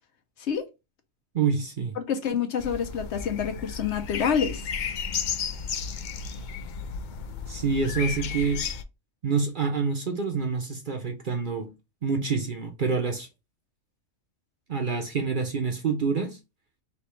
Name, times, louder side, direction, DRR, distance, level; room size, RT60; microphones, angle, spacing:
voice 1, 1.3-2.0 7.5-8.6 9.2-11.7 12.0-13.3 14.7-16.4, right 5 dB, 50° right, 0.7 m, -27 dB
voice 2, 2.0-4.6, left 7 dB, 65° left, 0.9 m, -27 dB
sound 1, 2.6-8.8, left 6 dB, 85° left, 0.4 m, -33 dB
3.4 x 2.8 x 4.3 m
omnidirectional pair, 1.4 m